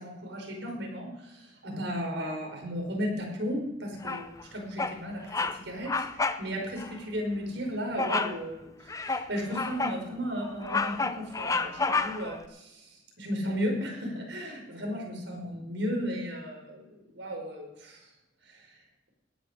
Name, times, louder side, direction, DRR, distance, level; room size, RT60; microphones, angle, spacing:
voice 1, 0.6-1.1 1.6-3.1 3.4-3.6 4.0-4.1 4.5-4.7 5.0-5.2 5.8-5.9 6.4-6.6 7.1-8.5 9.3-9.4 9.7-11.0 11.4-11.5 12.0-12.4 13.3-13.9 14.2-14.5 14.8-15.4 15.7-16.5 17.2-17.5, equal, 70° right, 1 dB, 5.4 m, -32 dB
Bird vocalization bird call bird song, 4.0-4.4 4.8-5.0 5.3-5.6 5.8-6.4 6.8-6.9 8.0-8.4 8.9-10.0 10.4-12.4, left 3 dB, 15° left, 0.6 m, -30 dB
18.5 x 10.0 x 5.2 m, 0.95 s
head